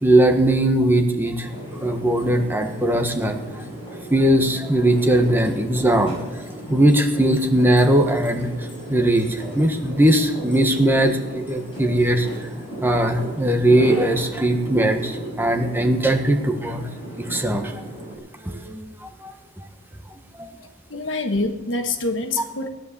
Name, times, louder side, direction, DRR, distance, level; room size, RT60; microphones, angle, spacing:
voice 1, 0.0-1.5 1.8-3.6 4.1-6.4 6.7-12.5 12.8-16.9 17.2-17.7 18.4-19.6 20.4-20.5, right 1 dB, 10° right, 4 dB, 1.4 m, -20 dB
sound 1, 1.4-18.2, right 1 dB, 25° left, 7.2 m, -36 dB
voice 2, 20.9-22.7, left 2 dB, 70° left, 7 dB, 1.4 m, -25 dB
17.5 x 10.5 x 7.1 m, 1.1 s
head